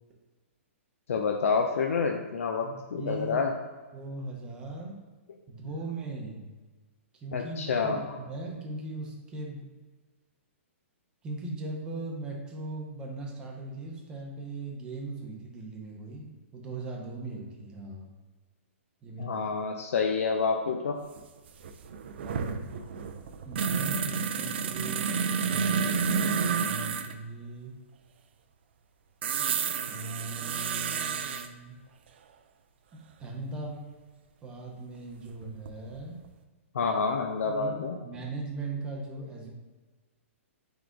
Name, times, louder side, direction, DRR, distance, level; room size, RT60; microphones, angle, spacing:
voice 1, 1.1-3.5 7.3-8.2 19.2-21.0 36.7-38.0, left 5 dB, 75° left, 3 dB, 0.4 m, -28 dB
voice 2, 2.6-3.4 3.9-5.0 5.5-6.5 7.1-9.7 11.2-18.1 19.0-19.5 22.2-22.7 23.4-25.9 26.2-27.8 29.9-31.8 32.9-33.8 34.4-36.2 37.4-37.7 38.0-39.5, right 2 dB, 10° right, -1 dB, 0.6 m, -39 dB
sound 1, 21.2-21.3 21.5-27.1 29.2-31.5 33.7-33.8 35.3-36.0 36.2-36.3, right 6 dB, 50° right, 0.4 m, -30 dB
3.6 x 3.4 x 3.7 m, 1.3 s
hypercardioid pair, 165°, 7 cm